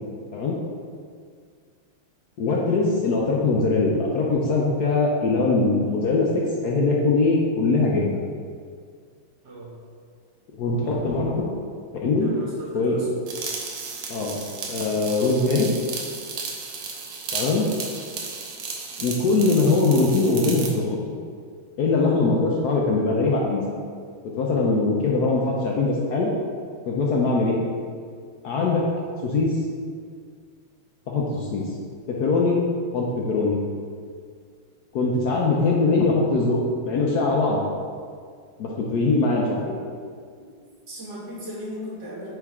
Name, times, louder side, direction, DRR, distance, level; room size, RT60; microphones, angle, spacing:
voice 1, 2.4-8.2 10.6-11.5 12.0-12.3 12.7-12.9 14.1-14.4 14.7-15.7 17.3-17.7 19.0-20.9 21.8-23.7 24.4-26.3 26.8-27.6 28.4-28.8 29.2-29.5 31.1-31.6 32.1-32.6 32.9-33.6 34.9-36.6 36.8-37.6 38.6-39.7, left 3 dB, 65° left, -2 dB, 1.0 m, -22 dB
voice 2, 12.2-13.1 40.9-42.3, equal, 55° right, -9 dB, 2.5 m, -36 dB
sound 1, 13.3-20.8, right 5 dB, 70° right, 1.4 m, -34 dB
9.0 x 3.6 x 3.6 m, 2.1 s
omnidirectional pair, 2.3 m